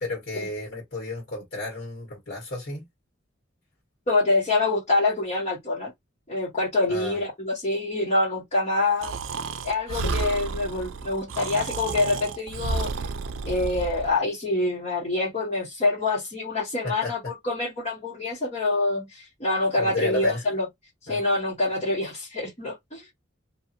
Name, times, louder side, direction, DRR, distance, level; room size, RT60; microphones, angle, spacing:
voice 1, 0.0-2.9 6.9-7.2 10.0-10.2 16.8-17.1 19.8-20.4 21.1-21.2, left 2 dB, 60° left, 1.6 m, -32 dB
voice 2, 4.1-5.9 6.3-9.1 9.6-12.9 13.4-20.6 21.0-23.1, left 2 dB, 35° left, 1.4 m, -26 dB
Breathing, 9.0-14.1, right 4 dB, 80° right, 0.5 m, -31 dB
2.9 x 2.6 x 2.5 m
head